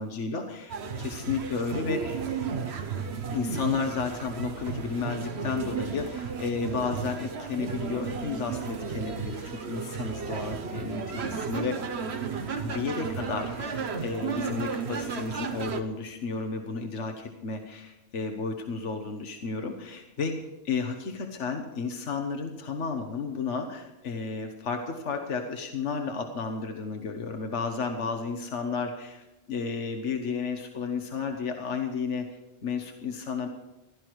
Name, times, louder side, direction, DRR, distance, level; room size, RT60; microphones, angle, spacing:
voice 1, 0.0-2.2 3.3-11.8 12.6-20.4 20.6-32.3 32.6-33.5, left 5 dB, 75° left, 4 dB, 1.6 m, -32 dB
sound 1, 0.7-15.8, right 5 dB, 65° right, 1.3 m, -34 dB
16.0 x 12.5 x 4.7 m, 0.95 s
omnidirectional pair, 1.2 m